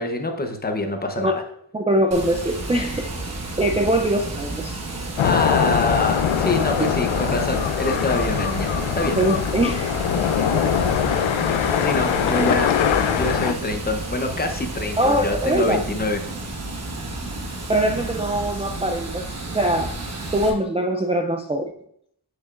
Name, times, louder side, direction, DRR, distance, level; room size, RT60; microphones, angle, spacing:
voice 1, 0.0-1.4 5.2-9.2 11.8-12.7 13.1-16.2 17.9-18.0, left 2 dB, 20° left, 4 dB, 0.8 m, -25 dB
voice 2, 1.7-3.1 3.6-4.8 9.2-9.9 15.0-15.8 17.7-20.0 20.3-21.7, right 1 dB, 15° right, 3 dB, 0.3 m, -22 dB
Water, 2.1-20.5, right 2 dB, 35° right, 1.1 m, -31 dB
sound 1, 5.2-13.5, left 8 dB, 80° left, 0.7 m, -22 dB
7.9 x 6.8 x 2.5 m, 0.68 s
wide cardioid pair, 170°, 46 cm